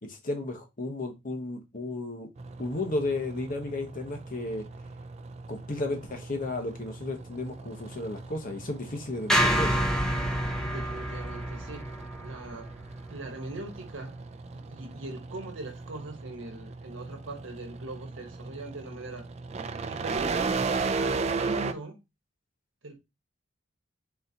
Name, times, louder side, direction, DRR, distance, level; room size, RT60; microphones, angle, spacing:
voice 1, 0.1-2.3 2.6-4.6 5.5-9.7, left 2 dB, 45° left, 1.0 m, -33 dB
sound 1, 2.4-21.7, right 4 dB, 35° right, 0.3 m, -36 dB
sound 2, 9.3-13.6, equal, 5° left, 0.8 m, -28 dB
voice 2, 10.6-11.9 12.2-12.8 13.1-14.2 14.5-19.3 19.8-20.6 21.0-22.0 22.8-23.0, right 2 dB, 75° right, 1.1 m, -41 dB
4.1 x 3.8 x 2.8 m
head